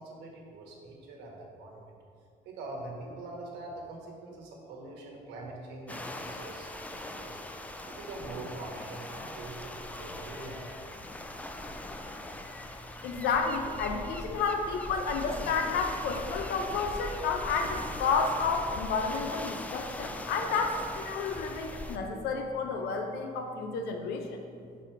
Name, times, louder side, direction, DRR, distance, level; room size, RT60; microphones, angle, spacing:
voice 1, 0.0-2.0 2.4-7.4 7.8-11.7, right 2 dB, 90° right, -1 dB, 1.2 m, -44 dB
sound 1, 5.9-22.0, left 1 dB, 10° left, 0.3 m, -40 dB
voice 2, 13.0-24.4, left 4 dB, 80° left, 4 dB, 0.6 m, -31 dB
4.5 x 4.0 x 5.7 m, 2.2 s
cardioid pair, 110°, 17 cm